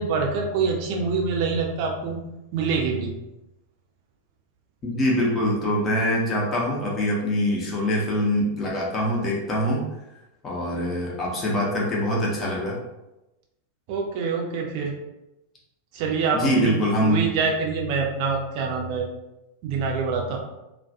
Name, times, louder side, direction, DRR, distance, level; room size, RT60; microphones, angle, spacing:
voice 1, 0.0-2.2 2.5-3.1 13.9-14.9 15.9-19.1 19.6-20.4, right 4 dB, 45° right, 0 dB, 0.5 m, -25 dB
voice 2, 4.8-9.8 10.4-12.8 16.3-17.3, equal, 25° left, -4 dB, 0.7 m, -24 dB
2.3 x 2.2 x 2.6 m, 0.95 s
figure-of-eight pair, 90°, 0 cm